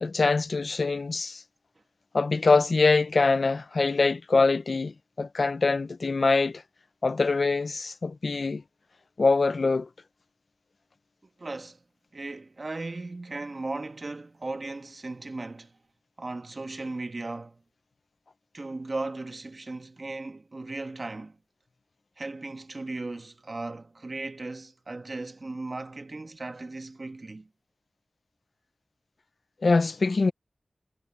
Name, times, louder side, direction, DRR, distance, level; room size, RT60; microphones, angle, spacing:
voice 1, 0.0-1.4 2.1-6.6 7.0-8.6 9.2-9.9 29.6-30.3, left 3 dB, 70° left, 0.6 m, -24 dB
voice 2, 11.4-11.8 12.1-15.8 16.2-17.6 18.5-21.4 22.2-27.5, right 2 dB, 45° right, 1.4 m, -37 dB
wide cardioid pair, 75°, 0 cm